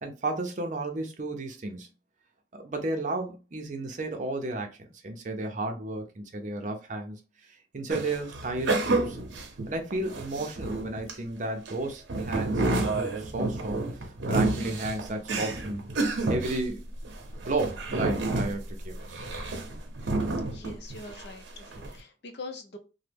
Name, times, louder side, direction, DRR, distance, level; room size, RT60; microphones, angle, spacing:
voice 1, 0.0-1.9 2.5-9.2 9.7-15.9 16.3-16.8 17.4-19.3, right 2 dB, 40° right, 0.5 m, -33 dB
sound 1, 7.9-11.1 11.7-21.3 21.6-21.9, right 2 dB, 80° right, 0.7 m, -30 dB
voice 2, 20.5-22.8, left 2 dB, 60° left, 0.6 m, -43 dB
3.0 x 2.1 x 3.4 m
head